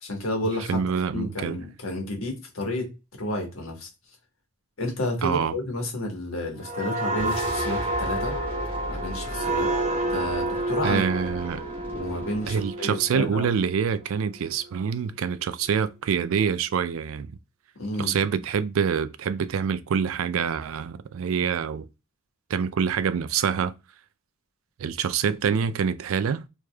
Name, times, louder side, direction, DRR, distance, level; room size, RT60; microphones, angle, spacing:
voice 1, 0.0-0.8 1.1-2.9 3.2-3.9 4.8-8.3 8.9-9.7 10.1-11.0 11.9-13.5 17.8-18.1, left 1 dB, 80° left, 1.3 m, -31 dB
voice 2, 0.7-1.6 5.2-5.5 10.8-11.6 12.5-17.4 18.0-21.9 22.5-23.7 24.8-26.4, right 6 dB, 80° right, 0.4 m, -26 dB
sound 1, 6.6-14.1 14.5-14.7, right 2 dB, 35° right, 0.6 m, -29 dB
sound 2, 7.1-12.7, equal, 10° left, 1.5 m, -38 dB
4.8 x 2.6 x 2.3 m
head